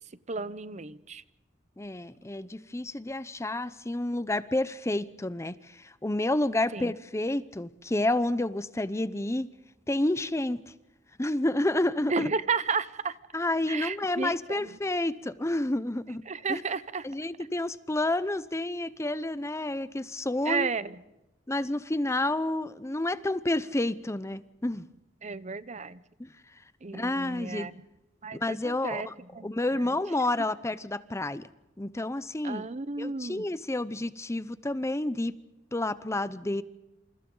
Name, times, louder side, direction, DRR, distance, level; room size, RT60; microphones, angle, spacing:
voice 1, 0.3-1.2 6.7-6.9 12.1-13.2 13.7-14.7 16.3-17.0 20.4-21.0 25.2-26.0 26.8-27.7 28.2-29.1 29.3-29.5 29.8-29.9 32.4-33.4, right 5 dB, 40° right, 16 dB, 0.8 m, -32 dB
voice 2, 1.8-9.5 9.9-10.6 11.2-12.3 13.3-16.2 16.5-16.6 17.0-20.7 21.5-24.9 26.2-26.3 26.9-27.7 28.3-29.1 29.4-31.5 31.8-32.7 33.0-35.4 35.7-36.6, left 1 dB, 15° left, 15 dB, 0.7 m, -29 dB
28.5 x 28.0 x 3.9 m, 0.96 s
head